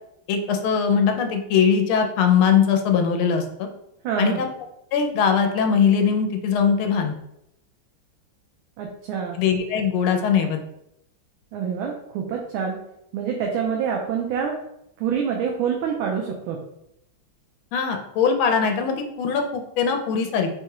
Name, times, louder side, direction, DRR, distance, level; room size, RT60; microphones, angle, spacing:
voice 1, 0.3-3.7 4.2-4.5 4.9-7.1 9.3-10.6 17.7-20.5, left 6 dB, 90° left, 5 dB, 1.5 m, -21 dB
voice 2, 4.0-4.4 8.8-9.4 11.5-12.8 13.1-14.6 15.0-16.6, right 7 dB, 80° right, 0 dB, 1.4 m, -26 dB
4.2 x 2.3 x 4.7 m, 0.80 s
omnidirectional pair, 2.2 m